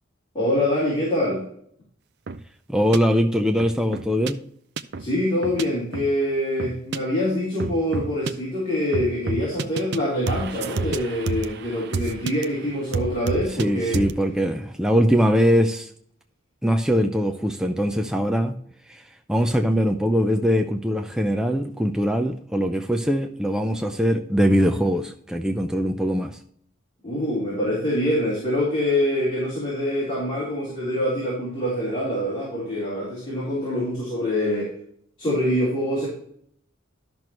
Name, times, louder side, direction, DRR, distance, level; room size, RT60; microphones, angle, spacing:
voice 1, 0.3-1.4 5.0-14.0 27.0-34.7 35.2-36.1, left 1 dB, 25° left, -8 dB, 3.8 m, -25 dB
sound 1, 2.3-2.4 2.9-3.0 3.6-4.3 4.8-5.1 5.4-5.6 5.9-6.1 6.6-7.0 7.6-8.3 8.9-10.0 10.3-12.4 12.9-13.7 13.9-14.2, right 4 dB, 55° right, 0.5 m, -29 dB
voice 2, 2.7-4.4 13.6-15.9 16.6-18.6 18.9-19.0 19.3-26.4, equal, 5° right, 4 dB, 0.5 m, -22 dB
12.5 x 6.1 x 3.0 m, 0.64 s
head